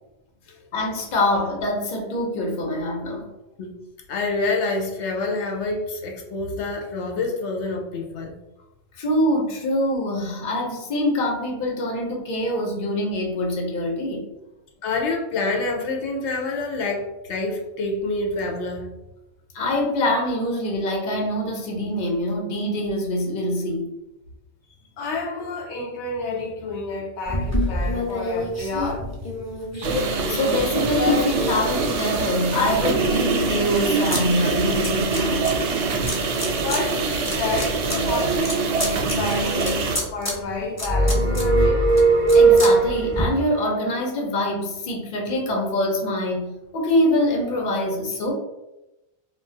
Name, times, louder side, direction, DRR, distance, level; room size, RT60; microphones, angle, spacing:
voice 1, 0.7-3.3 9.0-14.2 19.5-23.9 30.3-35.4 42.3-48.3, left 1 dB, 50° left, 0.8 m, -24 dB
voice 2, 4.1-8.3 14.8-18.9 25.0-29.1 29.7-29.8 36.6-38.7 39.2-42.0, left 3 dB, 90° left, 0.9 m, -28 dB
sound 1, 27.2-32.3 32.8-34.2 34.5-35.5 36.1-36.8 37.1-43.2, left 1 dB, 20° left, 0.6 m, -29 dB
sound 2, 29.8-40.0, right 4 dB, 85° right, 0.9 m, -24 dB
sound 3, 40.8-43.3, right 3 dB, 40° right, 0.5 m, -17 dB
2.4 x 2.3 x 3.7 m
omnidirectional pair, 1.1 m